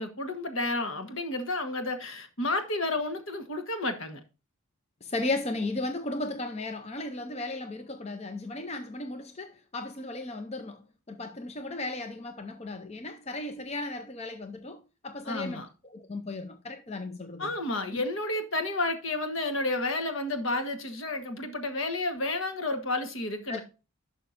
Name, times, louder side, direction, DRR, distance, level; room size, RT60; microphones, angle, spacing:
voice 1, 0.0-4.2 15.2-15.7 17.4-23.6, left 2 dB, 65° left, 1.4 m, -31 dB
voice 2, 5.0-10.8 11.1-15.6 15.9-17.5 17.9-18.0 23.5-23.6, left 2 dB, 30° left, 0.5 m, -35 dB
11.0 x 5.7 x 2.6 m
head